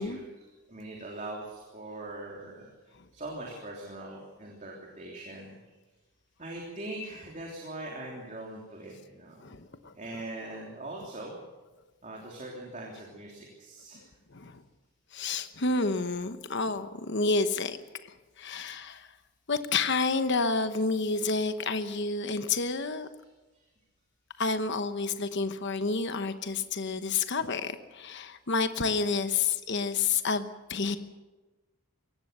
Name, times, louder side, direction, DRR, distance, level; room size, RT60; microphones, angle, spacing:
voice 1, 0.0-2.7 3.1-5.5 6.4-9.5 10.0-11.4 12.0-14.0, right 1 dB, 35° right, -1 dB, 3.2 m, -41 dB
voice 2, 9.4-9.9 14.3-14.6 15.1-17.8 18.0-19.1 19.5-23.1 24.4-31.0, left 4 dB, 50° left, 10 dB, 1.0 m, -29 dB
22.5 x 18.0 x 6.7 m, 1.2 s
head